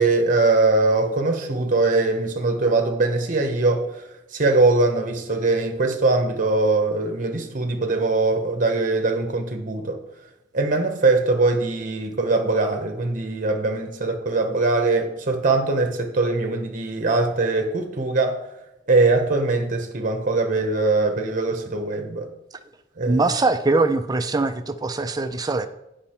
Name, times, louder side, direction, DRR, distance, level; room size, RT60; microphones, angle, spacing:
voice 1, 0.0-4.0 4.3-10.0 10.5-18.4 18.9-22.3 23.0-23.3, right 3 dB, 40° right, 0.9 m, -21 dB
voice 2, 23.1-25.7, right 3 dB, 20° right, 0.4 m, -22 dB
8.7 x 5.4 x 4.3 m
head